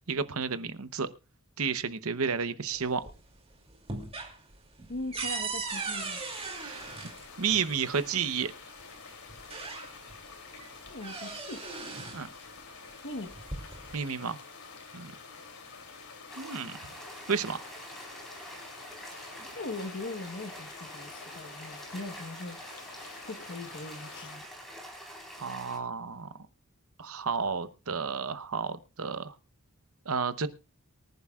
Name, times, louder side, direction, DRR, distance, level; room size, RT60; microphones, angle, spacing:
voice 1, 0.1-1.1 1.6-3.0 6.5-6.9 7.4-8.5 12.1-12.3 13.9-14.4 14.9-15.1 16.4-16.8 17.3-17.6 25.4-26.3 27.0-29.3 30.1-30.5, right 5 dB, 70° right, 12 dB, 0.9 m, -31 dB
sound 1, 2.7-3.4 3.7-7.7 8.8-8.9 9.3-10.2 10.6-12.3 13.2-14.0, right 4 dB, 25° right, 2.8 m, -38 dB
voice 2, 4.9-6.2 10.9-11.7 13.0-13.3 19.5-22.6 23.3-24.5, left 2 dB, 60° left, 6 dB, 1.3 m, -40 dB
sound 2, 5.7-24.4, left 4 dB, 75° left, 3.1 m, -48 dB
sound 3, 16.3-25.8, equal, ahead, 4.1 m, -46 dB
23.5 x 11.0 x 2.4 m, 0.28 s
head